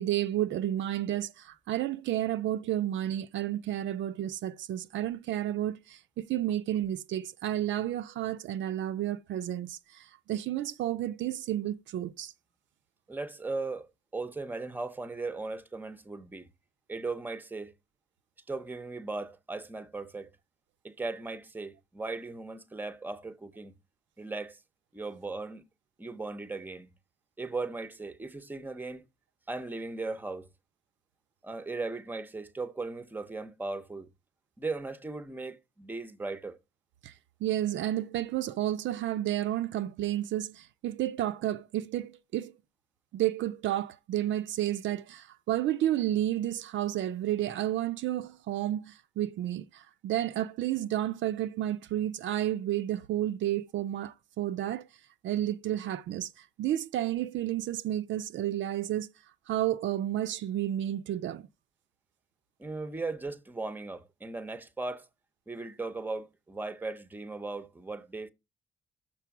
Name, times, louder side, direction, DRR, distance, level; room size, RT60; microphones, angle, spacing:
voice 1, 0.0-12.3 37.0-37.1 37.4-42.5 43.1-54.8 55.2-59.1 59.5-61.4, right 12 dB, 70° right, 0.5 m, -31 dB
voice 2, 13.1-16.5 16.9-17.7 18.5-20.3 20.8-23.7 24.2-24.6 24.9-25.6 26.0-26.9 27.4-29.1 29.5-30.5 31.4-34.1 34.6-36.6 62.6-65.1 65.5-68.3, right 3 dB, 10° right, 0.7 m, -37 dB
6.1 x 4.5 x 5.8 m
cardioid pair, 90°, 20 cm